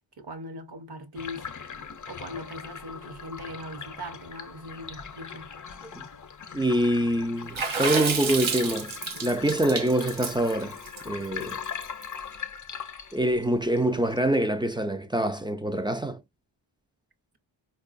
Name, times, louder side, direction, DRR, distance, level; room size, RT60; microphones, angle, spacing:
voice 1, 0.2-1.5 2.1-5.5, equal, 55° right, 0.9 m, -40 dB
sound 1, 1.1-14.2, left 7 dB, 40° left, 0.5 m, -40 dB
voice 2, 6.5-8.9 9.2-10.8 11.1-11.6 13.1-16.2, right 1 dB, 10° right, 0.3 m, -25 dB
Water / Splash splatter, 7.6-12.0, right 5 dB, 85° right, 0.9 m, -30 dB
4.5 x 2.3 x 2.5 m
wide cardioid pair, 95°, 47 cm